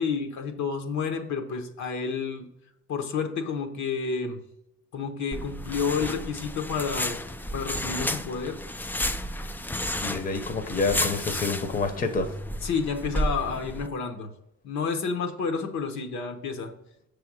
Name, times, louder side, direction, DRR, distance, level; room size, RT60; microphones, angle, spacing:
voice 1, 0.0-2.5 2.9-4.4 4.9-7.2 7.5-8.6 12.6-14.3 14.6-16.7, left 5 dB, 70° left, 5 dB, 1.0 m, -30 dB
sound 1, 5.3-13.9, left 1 dB, 5° left, 0.3 m, -32 dB
voice 2, 10.0-12.3, left 3 dB, 30° left, 6 dB, 0.8 m, -28 dB
6.3 x 3.4 x 6.1 m, 0.80 s
cardioid pair, 90°, 30 cm